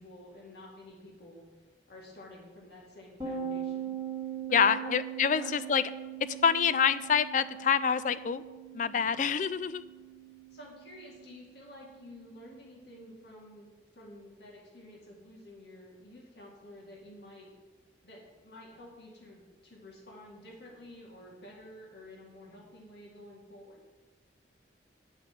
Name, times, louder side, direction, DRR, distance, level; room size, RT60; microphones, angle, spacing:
voice 1, 0.0-1.4 1.9-4.0 4.5-5.0 5.4-5.5 9.0-9.1 10.5-13.7 13.9-17.5 18.0-23.8, left 1 dB, 65° left, -2 dB, 2.2 m, -50 dB
sound 1, 3.2-12.7, right 9 dB, 20° right, 1.5 m, -41 dB
voice 2, 4.5-5.8 6.4-8.4 8.7-9.8, left 7 dB, 45° left, 15 dB, 0.4 m, -26 dB
10.5 x 5.1 x 7.6 m, 1.3 s
head